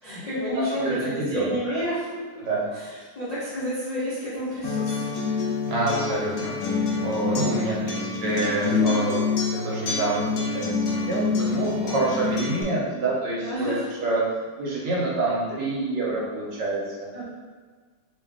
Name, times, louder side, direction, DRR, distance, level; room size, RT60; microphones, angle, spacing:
voice 1, 0.0-2.4 2.7-5.2 8.2-8.3 8.7-9.0 13.4-13.9 17.1-17.2, equal, 55° left, -11 dB, 0.4 m, -30 dB
voice 2, 0.8-1.5 2.4-2.7 5.6-9.2 9.5-14.2 14.6-17.1, right 2 dB, 65° right, -5 dB, 1.4 m, -27 dB
Acoustic guitar, 4.6-12.6, left 4 dB, 80° left, 1.5 m, -26 dB
3.3 x 3.2 x 3.6 m, 1.5 s
omnidirectional pair, 2.3 m